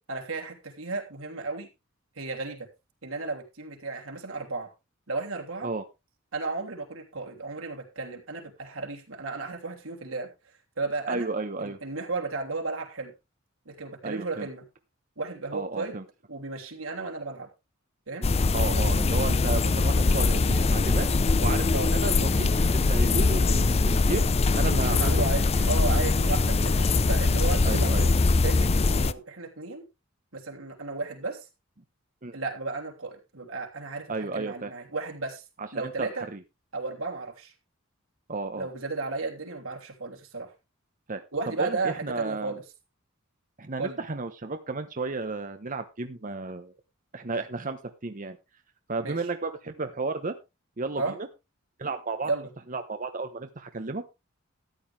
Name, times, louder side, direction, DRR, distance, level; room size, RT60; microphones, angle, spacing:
voice 1, 0.0-1.7 2.2-2.7 3.0-4.7 5.1-5.7 6.3-10.3 10.8-11.3 11.6-13.1 13.6-14.6 15.2-16.0 16.3-17.5 18.1-18.3 20.0-20.2 21.7-21.9 24.6-28.1 28.4-29.8 30.3-31.5 32.3-35.4 35.7-36.2 36.7-37.5 38.6-40.5 41.3-42.6 43.8-44.0 49.0-49.2 51.0-51.1 52.3-52.5, right 3 dB, 80° right, 2 dB, 3.1 m, -34 dB
voice 2, 11.1-11.8 14.0-14.5 15.5-16.0 18.5-21.1 21.4-24.3 24.6-25.3 25.6-25.7 27.6-28.3 32.2-32.4 34.1-34.7 35.6-36.4 38.3-38.7 41.1-42.6 43.6-46.7 47.1-48.4 48.9-50.3 50.8-51.3 51.8-52.3 52.7-54.1, right 3 dB, 40° right, 7 dB, 1.0 m, -33 dB
sound 1, 18.2-29.1, left 3 dB, 30° left, 0.5 m, -22 dB
13.5 x 9.6 x 3.4 m, 0.26 s
head